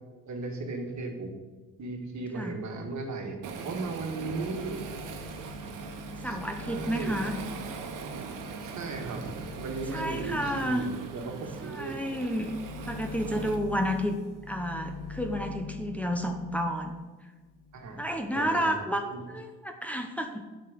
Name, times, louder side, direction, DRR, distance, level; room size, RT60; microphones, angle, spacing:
voice 1, 0.3-1.3 1.8-3.4 3.6-4.9 6.2-6.4 6.6-7.2 8.6-9.2 9.5-11.9 17.7-18.0 18.3-18.9 19.1-19.2, right 3 dB, 60° right, 3 dB, 1.9 m, -36 dB
Waves surf, 3.4-13.6, right 5 dB, 80° right, 1.3 m, -41 dB
sound 1, 4.1-17.1 17.4-18.4, left 4 dB, 80° left, 2.6 m, -44 dB
voice 2, 6.2-7.3 9.9-10.9 11.6-12.5 12.9-14.1 14.5-17.0 18.0-20.4, equal, 5° left, 3 dB, 0.9 m, -31 dB
8.7 x 5.1 x 7.7 m, 1.3 s
cardioid pair, 95°, 32 cm